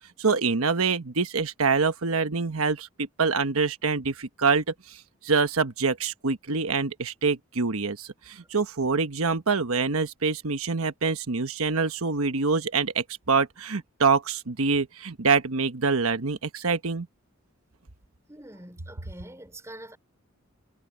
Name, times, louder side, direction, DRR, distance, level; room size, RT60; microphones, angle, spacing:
voice 1, 0.2-17.1, right 4 dB, 80° right, 1.2 m, -25 dB
voice 2, 18.3-20.0, right 1 dB, 15° right, 5.5 m, -44 dB
head